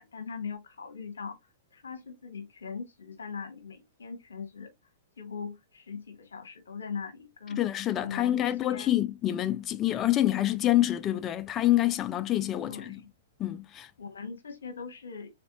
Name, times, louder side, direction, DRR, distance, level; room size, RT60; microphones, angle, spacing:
voice 1, 0.0-1.4 1.7-4.7 5.2-7.6 8.0-8.9 12.6-13.1 14.0-15.3, left 5 dB, 85° left, 1.1 m, -40 dB
voice 2, 7.6-13.0 13.4-13.9, left 14 dB, 25° left, 0.4 m, -27 dB
3.9 x 3.3 x 2.8 m
hypercardioid pair, 120°, 0 cm